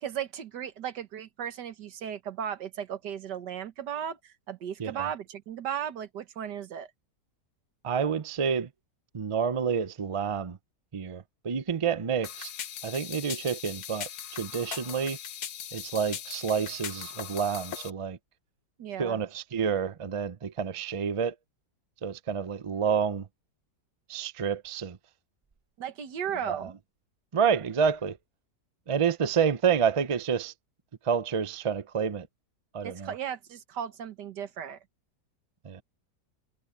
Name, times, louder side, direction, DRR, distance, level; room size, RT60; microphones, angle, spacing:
voice 1, 0.0-6.9 18.8-19.2 25.8-26.7 32.8-34.8, right 9 dB, 80° right, 1.8 m, -36 dB
voice 2, 7.8-8.7 9.1-10.6 10.9-12.5 12.8-15.2 15.7-18.2 19.0-21.3 22.0-23.3 24.1-25.0 26.5-26.7 27.3-28.2 28.9-30.5 31.0-32.3 32.7-33.1 35.6-35.8, right 6 dB, 45° right, 0.4 m, -29 dB
sound 1, 12.2-17.9, left 9 dB, 65° left, 1.5 m, -39 dB
omnidirectional pair, 1.8 m